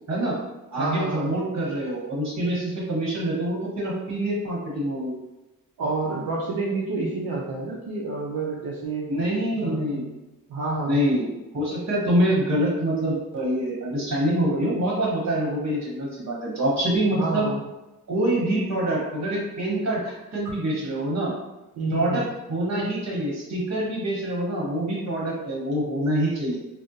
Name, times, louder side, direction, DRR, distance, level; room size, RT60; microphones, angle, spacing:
voice 1, 0.1-0.4 0.7-5.1 9.1-10.1 10.9-11.3 11.5-17.5 18.1-21.3 21.9-22.2 22.5-26.6, right 1 dB, 50° right, -4 dB, 1.3 m, -25 dB
voice 2, 0.8-1.4 5.8-9.1 9.6-10.1 10.5-11.0 17.2-17.6 21.7-22.2, right 3 dB, 80° right, -4 dB, 0.6 m, -29 dB
3.6 x 2.2 x 2.7 m, 1.0 s
cardioid pair, 95°, 35 cm